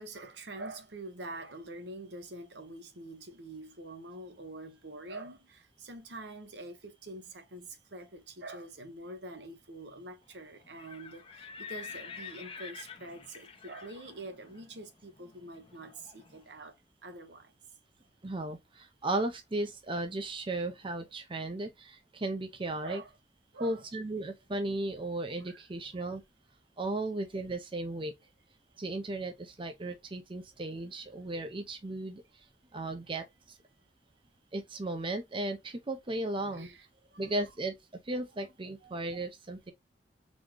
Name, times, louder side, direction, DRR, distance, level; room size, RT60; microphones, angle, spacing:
voice 1, 0.0-16.7 17.0-17.5 22.8-23.1 23.5-23.9 25.3-25.6 25.9-26.0 36.5-36.8 37.1-37.5 38.8-39.0, right 2 dB, 75° right, 1.1 m, -45 dB
Livestock farm animals working animals, 10.6-16.5, left 6 dB, 35° left, 0.7 m, -48 dB
voice 2, 18.2-23.0 23.6-26.2 26.8-28.1 28.8-32.2 32.7-33.2 34.5-36.7 37.2-37.7 38.1-39.7, right 2 dB, 30° right, 0.7 m, -35 dB
4.1 x 3.6 x 3.0 m
head